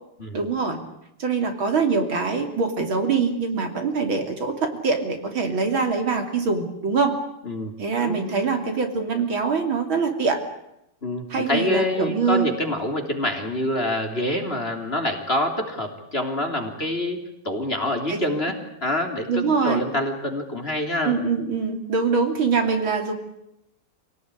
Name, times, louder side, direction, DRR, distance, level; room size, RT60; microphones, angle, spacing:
voice 1, 0.3-0.8 1.2-7.2 7.8-10.4 11.3-12.5 18.1-18.2 19.3-19.8 21.1-23.1, right 4 dB, 65° right, 5 dB, 3.8 m, -23 dB
voice 2, 7.4-7.7 8.0-8.7 11.0-17.2 17.4-21.2, left 1 dB, 25° left, 4 dB, 3.4 m, -26 dB
27.0 x 18.0 x 9.9 m, 0.82 s
omnidirectional pair, 2.4 m